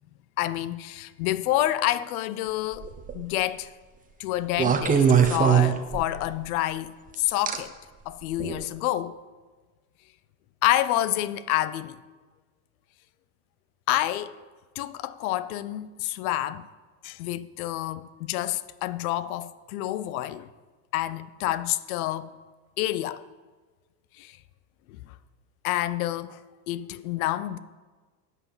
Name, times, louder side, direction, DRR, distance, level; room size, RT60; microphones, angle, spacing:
voice 1, 0.4-3.7 4.2-7.8 8.1-9.2 10.6-12.0 13.9-14.4 14.8-16.7 17.0-20.5 20.9-22.4 22.8-23.2 24.2-24.4 24.9-25.1 25.6-26.4 26.7-27.6, left 14 dB, 70° left, 0.7 m, -28 dB
sound 1, 2.7-3.2 4.6-6.3 7.5-7.6 8.4-8.6, right 7 dB, 20° right, 0.8 m, -21 dB
13.0 x 8.3 x 5.7 m
supercardioid pair, 140°, 45 cm